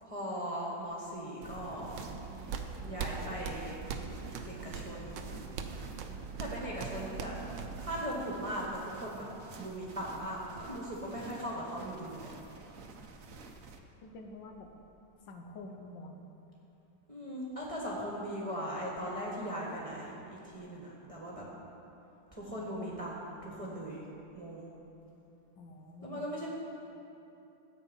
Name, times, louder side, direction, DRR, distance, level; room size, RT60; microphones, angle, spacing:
voice 1, 0.0-2.0 2.8-3.8 4.5-5.2 6.4-7.3 7.8-9.3 9.6-12.3 17.1-20.1 20.4-21.5 22.3-24.0 24.3-24.7 26.0-26.5, equal, 20° right, -5 dB, 1.6 m, -39 dB
sound 1, 1.4-13.8, right 4 dB, 55° right, 1.1 m, -50 dB
sound 2, 1.8-8.0, right 5 dB, 80° right, 1.5 m, -41 dB
voice 2, 14.0-14.7 15.3-16.1 22.4-22.7 25.6-26.2, left 2 dB, 80° left, 3 dB, 1.6 m, -48 dB
13.5 x 8.3 x 5.4 m, 2.9 s
omnidirectional pair, 2.0 m